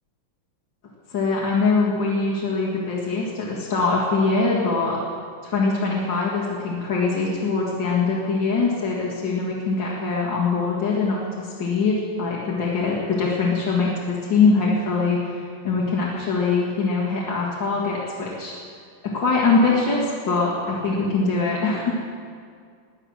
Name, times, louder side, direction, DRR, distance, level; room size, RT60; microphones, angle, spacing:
voice 1, 1.1-5.0 5.4-18.5 19.0-22.0, left 4 dB, 65° left, -6 dB, 2.7 m, -23 dB
21.0 x 9.1 x 6.4 m, 2.2 s
omnidirectional pair, 2.2 m